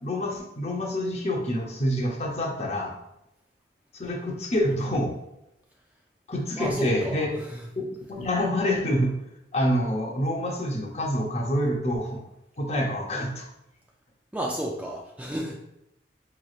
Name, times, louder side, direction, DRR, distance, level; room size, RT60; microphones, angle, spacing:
voice 1, 0.0-2.9 4.0-5.2 6.3-7.3 7.8-9.1 9.5-12.2 12.6-13.5, equal, 35° left, 1 dB, 0.7 m, -27 dB
voice 2, 6.5-7.7 14.3-15.6, equal, 10° right, -1 dB, 0.3 m, -32 dB
5.2 x 3.1 x 2.4 m, 0.85 s
head